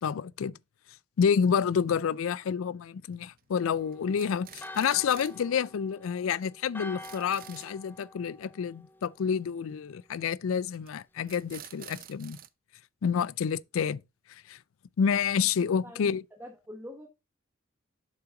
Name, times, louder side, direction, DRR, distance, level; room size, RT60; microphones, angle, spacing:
voice 1, 0.0-0.6 1.2-12.4 13.0-14.0 14.5-14.6 15.0-16.2, left 7 dB, 80° left, 0.4 m, -29 dB
sound 1, 3.1-3.5 3.9-5.4 5.7-5.8 6.0-6.1 6.4-6.5 6.8-7.7 10.5-10.9 11.3-12.5, right 11 dB, 45° right, 0.5 m, -48 dB
Church bell, 3.6-9.3, left 2 dB, 10° left, 0.4 m, -48 dB
voice 2, 15.8-17.1, left 1 dB, 10° right, 1.2 m, -45 dB
7.4 x 5.8 x 3.8 m
head